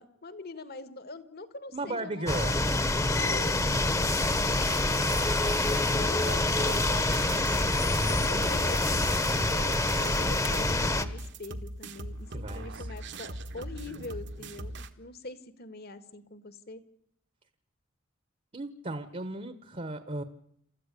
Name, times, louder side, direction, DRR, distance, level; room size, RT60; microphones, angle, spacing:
voice 1, 0.0-5.4 5.9-7.7 8.0-16.8, left 3 dB, 50° left, 13 dB, 1.9 m, -43 dB
voice 2, 1.7-2.6 9.2-9.5 12.3-12.9 18.5-20.2, right 2 dB, 35° right, 12 dB, 1.3 m, -36 dB
sound 1, 2.3-11.0, left 2 dB, 15° left, 1.3 m, -26 dB
sound 2, 4.1-10.7, right 1 dB, 5° right, 1.0 m, -41 dB
sound 3, 6.7-14.9, right 1 dB, 60° right, 1.6 m, -40 dB
28.5 x 14.5 x 8.5 m, 0.73 s
head